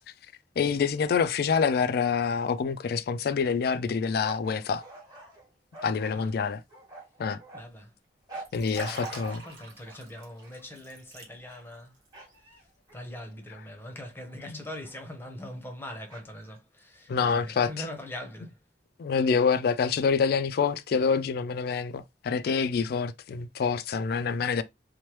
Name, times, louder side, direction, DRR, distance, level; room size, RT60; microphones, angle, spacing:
voice 1, 0.6-4.8 5.8-6.6 7.2-7.4 8.5-9.4 17.1-17.7 19.0-24.6, left 5 dB, 60° left, 0.3 m, -26 dB
sound 1, 4.2-7.6 8.3-9.4 9.8-10.7 11.3-11.8 12.1-13.7 14.2-14.3 14.8-15.0 16.1-16.6, right 2 dB, 20° right, 1.1 m, -46 dB
voice 2, 7.5-7.9 8.8-11.9 12.6-18.6, left 1 dB, 15° left, 0.7 m, -42 dB
Liquid, 8.4-11.8 12.1-12.3, right 2 dB, 85° right, 1.0 m, -46 dB
3.1 x 2.1 x 2.9 m
head